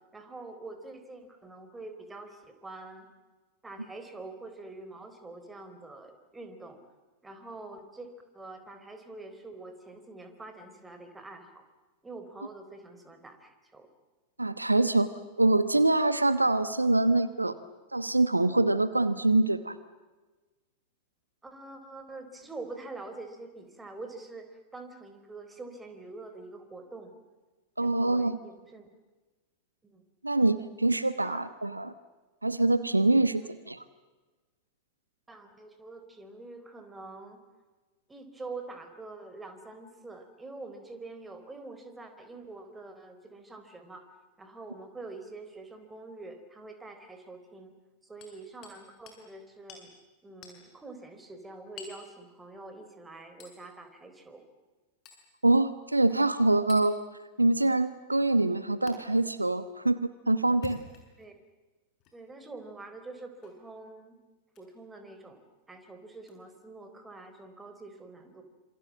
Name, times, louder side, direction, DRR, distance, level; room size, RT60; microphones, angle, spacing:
voice 1, 0.1-3.1 3.6-6.8 7.2-11.6 12.0-13.9 21.4-27.2 27.8-28.9 29.8-30.0 31.2-31.4 33.4-33.5 35.3-37.4 38.1-44.1 44.4-47.7 48.0-49.9 50.2-54.5 61.2-61.3 62.1-64.2 64.6-68.4, right 3 dB, 10° right, 7 dB, 4.0 m, -45 dB
voice 2, 14.4-15.1 15.4-17.6 17.9-19.7 27.8-28.4 30.2-31.9 32.4-33.8 55.4-56.9 57.4-60.8, right 2 dB, 85° right, 13 dB, 1.1 m, -25 dB
Hammer, 48.2-48.8 49.1-49.2 49.7-49.9 50.4-50.6 51.8-52.0 53.4-53.6 55.1-55.3 56.7-56.9 58.9-59.0 60.5-61.3 62.0-62.2 63.4-63.6 64.5-64.7 66.2-66.3, left 5 dB, 35° left, 7.0 m, -47 dB
27.0 x 26.5 x 7.5 m, 1.2 s
figure-of-eight pair, 90°, 0 cm